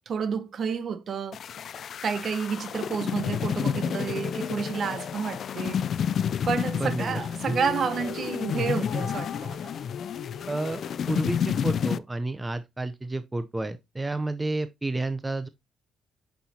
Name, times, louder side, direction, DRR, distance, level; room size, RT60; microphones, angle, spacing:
voice 1, 0.1-1.4 2.0-5.9 6.5-9.7, right 6 dB, 55° right, 1.0 m, -30 dB
sound 1, 1.3-12.0, left 8 dB, 60° left, 0.3 m, -30 dB
voice 2, 6.8-7.2 7.5-7.6 10.5-10.8 11.1-15.5, right 2 dB, 15° right, 0.6 m, -30 dB
sound 2, 7.4-11.7, left 8 dB, 75° left, 0.8 m, -40 dB
8.5 x 5.7 x 2.8 m
cardioid pair, 90°, 0 cm